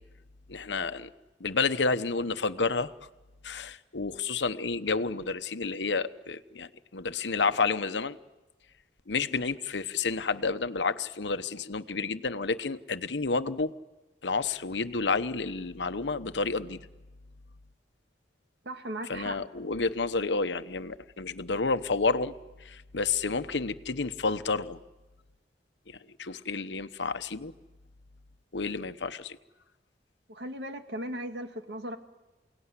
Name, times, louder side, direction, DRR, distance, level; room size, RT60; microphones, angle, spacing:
voice 1, 0.5-1.1 1.4-3.1 3.4-8.2 9.1-13.7 14.2-16.9 19.0-22.3 22.6-24.8 25.9-27.5 28.5-29.4, left 4 dB, 85° left, 11 dB, 1.0 m, -30 dB
voice 2, 18.7-19.4 30.3-32.0, right 1 dB, 70° right, 6 dB, 1.9 m, -37 dB
29.0 x 18.0 x 9.8 m, 1.1 s
head